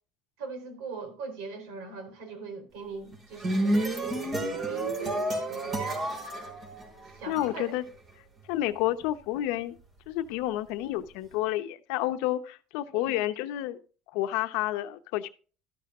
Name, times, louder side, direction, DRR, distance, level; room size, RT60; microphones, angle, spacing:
voice 1, 0.4-6.5 7.0-7.7 12.9-13.1, right 4 dB, 80° right, 4.1 m, -41 dB
sound 1, 3.1-7.4, right 1 dB, 35° right, 4.6 m, -30 dB
voice 2, 7.3-7.8 8.5-9.7 10.1-13.8 14.1-15.3, left 14 dB, 80° left, 0.9 m, -30 dB
13.0 x 12.5 x 2.5 m
cardioid pair, 125°, 0 cm